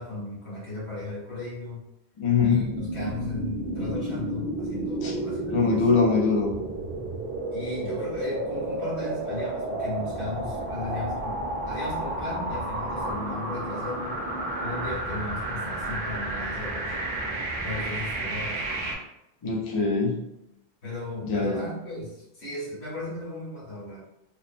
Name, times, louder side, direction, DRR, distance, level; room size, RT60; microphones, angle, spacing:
voice 1, 0.0-1.9 2.4-5.8 7.5-14.2 14.6-16.9 17.6-18.7 20.8-24.0, left 2 dB, 80° left, -6 dB, 1.4 m, -36 dB
voice 2, 2.2-2.7 5.0-5.1 5.5-6.5 19.4-20.1 21.2-21.7, left 4 dB, 45° left, -1 dB, 0.4 m, -23 dB
sound 1, 2.4-18.9, right 1 dB, 55° right, 0.7 m, -31 dB
2.9 x 2.0 x 2.4 m, 0.85 s
omnidirectional pair, 1.1 m